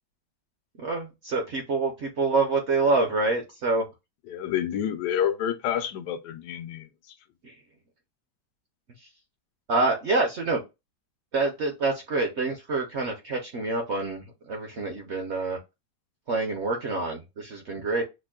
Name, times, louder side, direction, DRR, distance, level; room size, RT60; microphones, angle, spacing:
voice 1, 0.8-3.8 7.4-7.5 9.7-10.6 11.3-15.6 16.3-18.0, right 3 dB, 55° right, 0.8 m, -26 dB
voice 2, 4.3-6.9, left 9 dB, 80° left, 1.2 m, -28 dB
6.1 x 2.1 x 2.2 m
omnidirectional pair, 1.8 m